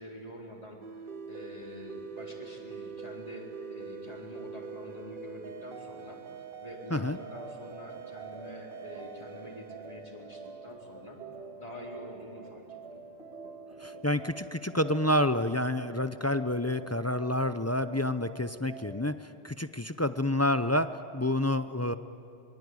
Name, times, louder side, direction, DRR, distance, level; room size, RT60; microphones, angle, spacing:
voice 1, 0.0-6.2 6.6-11.2 11.6-13.0, left 1 dB, 35° left, -2 dB, 4.5 m, -46 dB
sound 1, 0.8-11.1, right 6 dB, 55° right, 1.0 m, -44 dB
sound 2, 7.2-19.1, right 4 dB, 90° right, 2.2 m, -47 dB
voice 2, 13.8-21.9, left 1 dB, 20° left, 11 dB, 0.6 m, -29 dB
25.0 x 23.0 x 9.7 m, 2.5 s
omnidirectional pair, 1.1 m